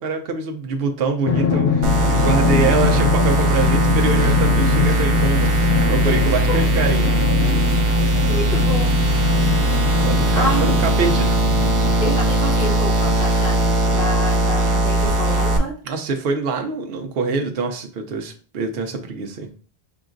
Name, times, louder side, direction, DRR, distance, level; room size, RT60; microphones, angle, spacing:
voice 1, 0.0-7.2 10.0-11.4 15.8-19.5, right 4 dB, 65° right, 4 dB, 0.9 m, -25 dB
Drum, 1.3-12.3, left 6 dB, 65° left, 1.1 m, -23 dB
sound 1, 1.8-15.6, right 1 dB, 40° right, 0.5 m, -19 dB
voice 2, 6.5-6.9 7.7-9.0 10.3-10.8 12.0-15.8, left 1 dB, 40° left, -4 dB, 1.5 m, -28 dB
4.9 x 3.7 x 2.5 m, 0.40 s
omnidirectional pair, 1.1 m